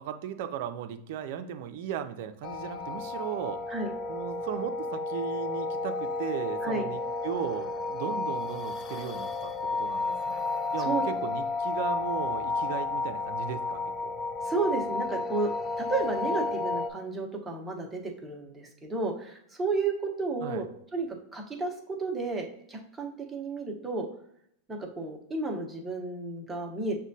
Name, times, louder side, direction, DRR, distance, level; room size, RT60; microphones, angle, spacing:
voice 1, 0.0-3.6 4.1-10.4 10.7-14.1 20.4-20.7, right 9 dB, 65° right, 9 dB, 0.5 m, -37 dB
sound 1, 2.4-16.9, left 3 dB, 30° left, 0.4 m, -32 dB
voice 2, 14.4-15.5 15.8-20.6 20.9-24.1 24.7-27.0, right 3 dB, 10° right, 0 dB, 0.8 m, -32 dB
6.0 x 2.2 x 2.7 m, 0.73 s
supercardioid pair, 125°, 0 cm